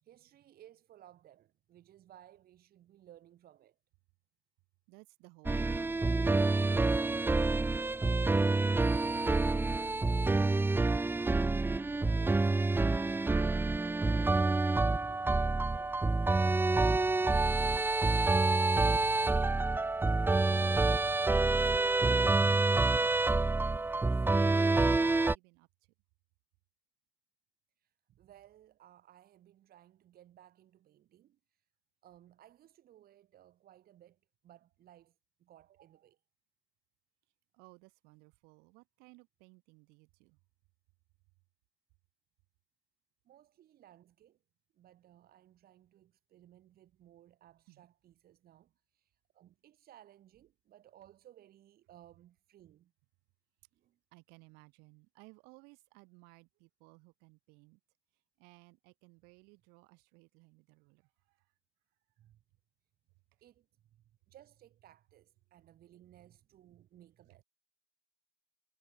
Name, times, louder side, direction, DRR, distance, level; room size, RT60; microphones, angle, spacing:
voice 1, 0.0-3.8 12.1-16.1 16.7-17.2 17.5-19.0 27.8-31.7 32.0-36.2 43.2-44.4 44.7-52.9 53.7-54.0 62.2-62.4 63.4-67.4, right 12 dB, 70° right, 1.6 m, -60 dB
voice 2, 4.9-9.6 20.2-24.2 24.7-25.9 37.5-40.4 47.7-47.9 54.1-57.8 58.1-61.5, right 28 dB, 90° right, 3.6 m, -59 dB
sound 1, 5.5-25.4, right 3 dB, 15° right, 0.4 m, -28 dB
supercardioid pair, 55°, 16 cm